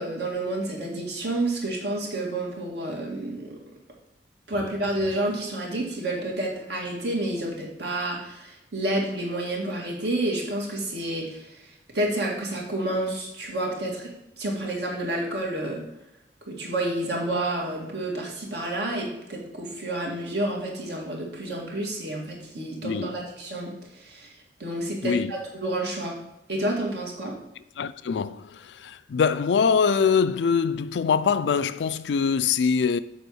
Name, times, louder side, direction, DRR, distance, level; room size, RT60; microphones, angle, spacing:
voice 1, 0.0-3.6 4.5-14.1 14.4-15.8 16.5-26.1 26.5-27.3, right 1 dB, 70° right, 2.1 m, -29 dB
voice 2, 22.8-23.2 25.0-25.3 27.8-33.0, left 6 dB, 80° left, 0.4 m, -23 dB
7.0 x 4.4 x 6.3 m
head